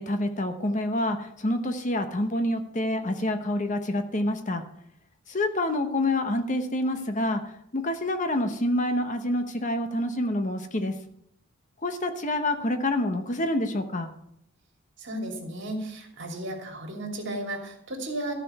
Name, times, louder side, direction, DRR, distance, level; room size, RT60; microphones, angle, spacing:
voice 1, 0.0-4.6 5.3-11.0 11.8-14.1, left 1 dB, 35° left, 7 dB, 0.9 m, -27 dB
voice 2, 15.0-18.3, right 1 dB, 55° right, 2 dB, 2.9 m, -34 dB
14.5 x 5.1 x 8.0 m, 0.72 s
head